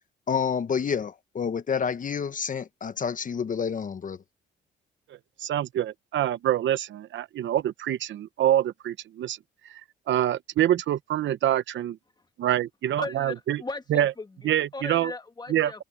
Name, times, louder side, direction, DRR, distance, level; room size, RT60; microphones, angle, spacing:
voice 1, 0.3-4.2, left 6 dB, 40° left, 1.0 m, -29 dB
voice 2, 5.4-9.4 9.6-9.8 10.1-12.0 12.4-13.6 13.9-14.1 14.4-15.1 15.5-15.8, right 12 dB, 70° right, 0.9 m, -26 dB
voice 3, 12.9-15.8, left 3 dB, 20° left, 2.1 m, -37 dB
cardioid pair, 90°, 20 cm